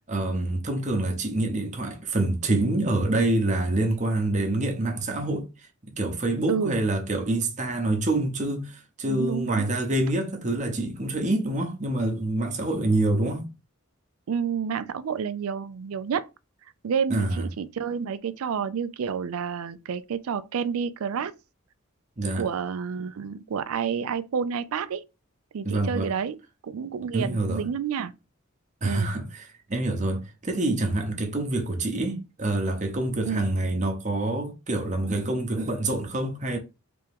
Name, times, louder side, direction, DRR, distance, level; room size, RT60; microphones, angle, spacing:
voice 1, 0.1-5.5 6.0-13.5 17.1-17.5 22.2-22.5 25.6-26.1 27.1-27.6 28.8-36.6, right 2 dB, 35° right, 0.8 m, -26 dB
voice 2, 9.1-9.7 14.3-16.3 16.8-21.3 22.4-25.0 25.5-26.4 26.6-28.1 28.8-29.1 33.2-33.4, right 7 dB, 75° right, 0.4 m, -29 dB
3.4 x 3.0 x 3.4 m
head